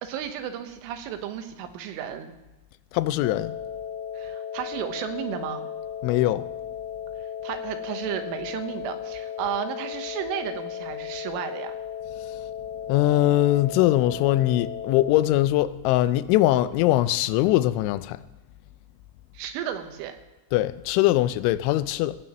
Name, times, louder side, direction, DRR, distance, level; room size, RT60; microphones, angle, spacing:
voice 1, 0.0-2.3 4.2-5.7 7.4-11.7 19.4-20.2, right 9 dB, 85° right, 3.6 m, -33 dB
voice 2, 2.9-3.6 6.0-6.5 12.3-12.4 12.9-18.2 20.5-22.2, left 15 dB, 85° left, 2.9 m, -22 dB
sound 1, 3.2-15.2, left 8 dB, 50° left, 4.4 m, -35 dB
18.0 x 16.0 x 3.0 m
omnidirectional pair, 5.5 m